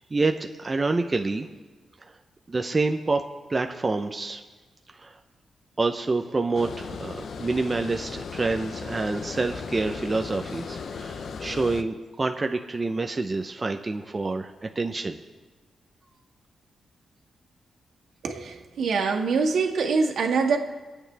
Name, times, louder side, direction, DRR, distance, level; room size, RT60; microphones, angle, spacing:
voice 1, 0.0-1.5 2.0-2.1 2.5-3.2 3.5-4.4 4.9-5.2 5.8-15.2, right 3 dB, 20° right, 5 dB, 0.6 m, -27 dB
Water, 6.5-11.8, left 5 dB, 55° left, 0.7 m, -36 dB
voice 2, 18.2-20.6, right 4 dB, 75° right, 2 dB, 1.8 m, -24 dB
25.5 x 8.8 x 3.4 m, 1.3 s
wide cardioid pair, 150°, 0 cm